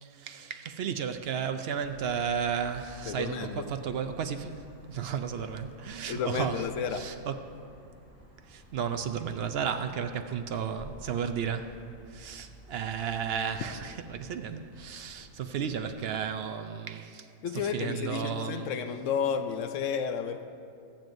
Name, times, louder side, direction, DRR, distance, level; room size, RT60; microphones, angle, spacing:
voice 1, 0.0-6.6 6.9-7.3 8.5-11.8 12.1-17.3 17.7-18.7, right 7 dB, 65° right, 8 dB, 0.6 m, -33 dB
sound 1, 1.7-16.4, equal, 10° left, 2.2 m, -53 dB
voice 2, 3.1-3.7 6.1-7.1 17.4-20.5, left 7 dB, 70° left, 8 dB, 0.9 m, -32 dB
22.5 x 7.5 x 2.6 m, 2.4 s
omnidirectional pair, 1.4 m